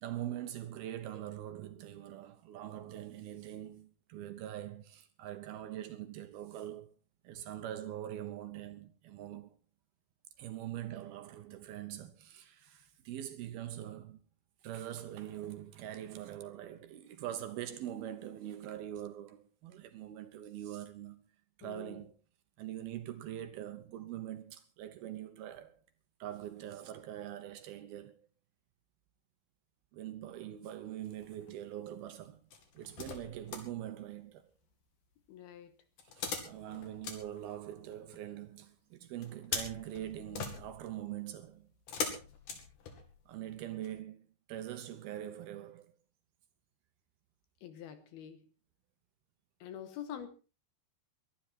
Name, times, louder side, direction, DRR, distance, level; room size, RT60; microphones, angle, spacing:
voice 1, 0.0-6.9 7.2-9.6 10.4-14.2 14.6-21.2 21.6-22.2 22.6-25.8 26.2-28.3 29.9-32.4 32.7-34.5 36.2-41.7 43.3-45.9, right 12 dB, 70° right, 2.6 m, -43 dB
voice 2, 21.6-22.1 35.3-35.7 47.6-48.5 49.6-50.3, left 9 dB, 70° left, 2.8 m, -46 dB
sound 1, 31.1-31.7 32.5-33.7 36.0-38.2 39.2-43.3 43.8-43.9, left 5 dB, 50° left, 3.7 m, -42 dB
22.0 x 12.0 x 4.3 m
omnidirectional pair, 5.1 m